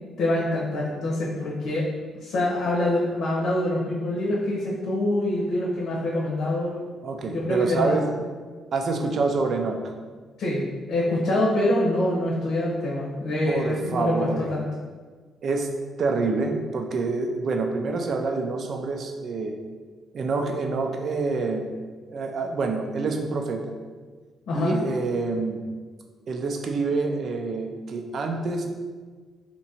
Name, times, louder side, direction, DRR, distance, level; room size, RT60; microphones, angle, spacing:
voice 1, 0.2-1.8 2.2-6.8 7.3-8.0 10.4-14.6 24.5-24.8, left 1 dB, 80° left, -5 dB, 0.8 m, -25 dB
voice 2, 7.0-8.2 8.7-9.8 13.5-14.5 15.4-15.7 16.0-19.6 20.1-21.7 22.1-23.7 24.5-25.6 26.3-28.7, right 3 dB, 55° right, 4 dB, 0.4 m, -27 dB
2.9 x 2.6 x 4.2 m, 1.5 s
cardioid pair, 90°, 0 cm